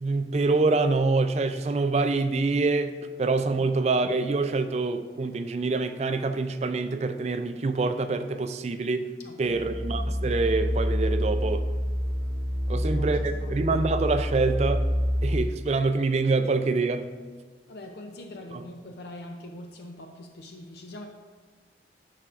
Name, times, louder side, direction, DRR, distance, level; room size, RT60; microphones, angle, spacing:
voice 1, 0.0-9.1 9.4-11.7 12.7-14.9 15.2-17.0, right 3 dB, 35° right, 9 dB, 0.3 m, -25 dB
voice 2, 9.2-9.8 12.7-13.1 13.4-13.6 17.7-21.1, left 1 dB, 65° left, 4 dB, 0.5 m, -43 dB
sound 1, 9.4-15.4, equal, 45° left, 1.1 m, -27 dB
10.0 x 5.7 x 2.5 m, 1.5 s
head